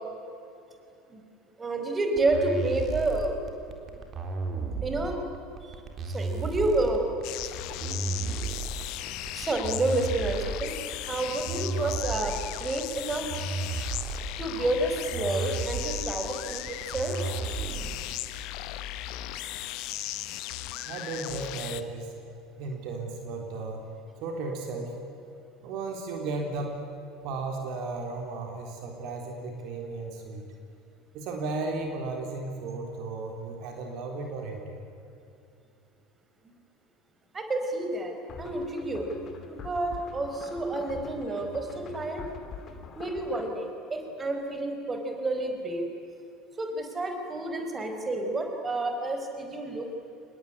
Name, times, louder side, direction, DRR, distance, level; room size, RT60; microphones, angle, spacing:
voice 1, 1.6-3.4 4.8-5.2 5.6-5.8 6.1-7.0 9.3-10.8 11.1-13.3 14.4-17.2 37.3-39.1 39.5-42.3 43.0-45.9 46.6-49.9, right 2 dB, 20° right, 5 dB, 4.6 m, -29 dB
sound 1, 2.2-18.1, right 4 dB, 40° right, 3.8 m, -34 dB
sound 2, 7.2-21.8, left 14 dB, 55° left, 1.2 m, -37 dB
voice 2, 20.8-22.1 22.6-23.8 24.2-25.0 25.6-26.8 27.2-30.4 31.1-34.8, right 3 dB, 55° right, 2 dB, 4.0 m, -35 dB
sound 3, 38.3-43.5, left 6 dB, 40° left, 2.7 m, -44 dB
26.5 x 20.5 x 9.9 m, 2.7 s
figure-of-eight pair, 70°, 0 cm